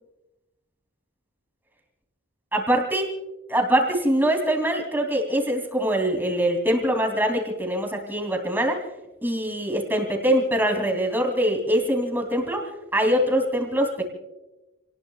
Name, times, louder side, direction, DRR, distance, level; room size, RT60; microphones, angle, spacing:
voice 1, 2.5-3.0 3.5-8.8 9.2-12.6 12.9-14.0, right 1 dB, 10° right, 2 dB, 3.0 m, -23 dB
30.0 x 19.5 x 2.4 m, 1.1 s
head